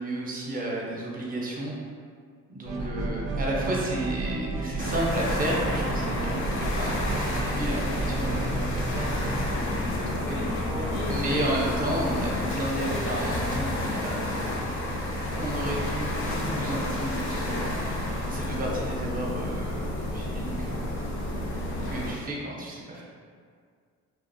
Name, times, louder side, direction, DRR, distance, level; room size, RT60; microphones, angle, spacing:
voice 1, 0.0-1.8 2.5-8.9 9.3-10.4 11.1-14.2 15.4-19.8 20.1-20.8 21.8-23.1, right 1 dB, 30° right, -3 dB, 0.6 m, -32 dB
sound 1, 2.6-9.6, right 3 dB, 80° right, 0.4 m, -32 dB
sound 2, 4.8-22.1, left 1 dB, 45° left, 0.5 m, -30 dB
voice 2, 10.3-11.3, left 1 dB, 70° left, -5 dB, 0.8 m, -37 dB
2.5 x 2.0 x 2.5 m, 2.1 s
cardioid pair, 90°, 30 cm